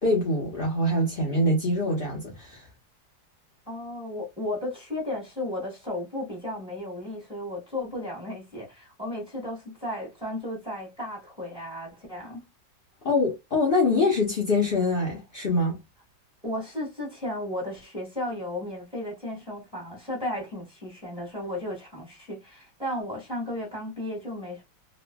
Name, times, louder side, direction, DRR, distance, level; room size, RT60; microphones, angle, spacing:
voice 1, 0.0-2.6 13.0-15.8, left 2 dB, 65° left, 0.5 m, -24 dB
voice 2, 3.7-12.4 16.4-24.6, left 1 dB, 5° right, 1.3 m, -34 dB
3.0 x 2.5 x 2.2 m
omnidirectional pair, 2.0 m